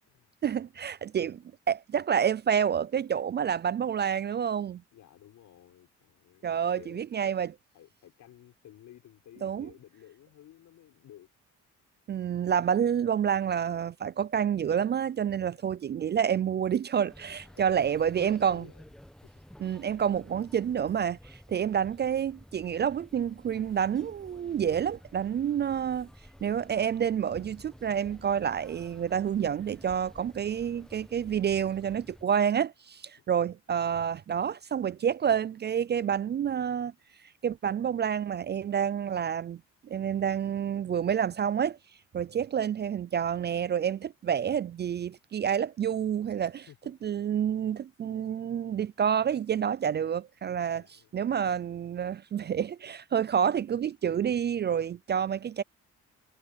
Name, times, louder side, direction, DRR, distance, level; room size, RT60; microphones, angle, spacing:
voice 1, 0.4-4.8 6.4-7.5 9.4-9.7 12.1-18.6 19.6-26.1 26.4-36.9 37.4-41.8 42.1-46.7 47.0-50.8 51.1-55.6, right 8 dB, 35° right, 0.4 m, -28 dB
voice 2, 4.9-6.4 6.7-7.3 7.7-11.3 15.4-15.7 17.3-18.8 19.2-19.3 21.7-21.8 40.1-40.2 46.7-47.1 50.7-51.1, left 12 dB, 75° left, 6.7 m, -54 dB
sound 1, 17.1-32.2, equal, ahead, 1.4 m, -52 dB
cardioid pair, 90°, 30 cm